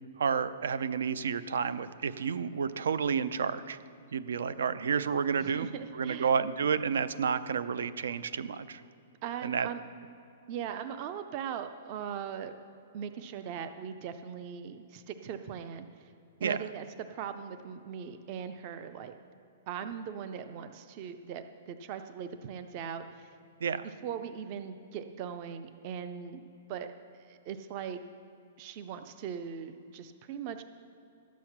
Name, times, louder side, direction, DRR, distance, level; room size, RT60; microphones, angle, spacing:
voice 1, 0.2-3.8 4.1-5.7 5.9-8.8 9.4-9.7 16.4-16.6 23.6-23.9, right 6 dB, 85° right, 15 dB, 0.6 m, -30 dB
voice 2, 5.4-6.3 9.2-9.8 10.5-12.5 12.9-15.9 16.4-16.9 17.1-19.1 19.7-23.3 24.0-26.4 26.7-28.0 28.6-30.6, right 8 dB, 25° right, 10 dB, 0.4 m, -40 dB
13.0 x 8.3 x 5.9 m, 2.7 s
hypercardioid pair, 180°, 0 cm